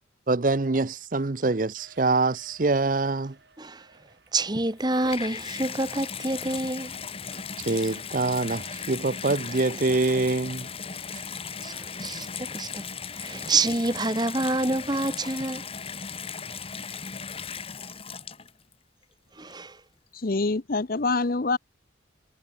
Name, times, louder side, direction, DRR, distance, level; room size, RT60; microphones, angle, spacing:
voice 1, 0.3-3.3 7.6-10.7, right 3 dB, 45° right, 0.7 m, -25 dB
sound 1, 1.8-7.5, right 3 dB, 60° right, 6.2 m, -58 dB
voice 2, 4.3-6.9 7.3-7.4 7.9-8.0 11.6-12.9 13.1-15.6 19.4-19.8, right 2 dB, 20° right, 1.5 m, -28 dB
Water tap faucet / Bathtub (filling or washing), 4.7-18.7 19.5-19.6, left 6 dB, 30° left, 1.9 m, -37 dB
voice 3, 20.1-21.6, left 3 dB, 50° left, 0.8 m, -25 dB
head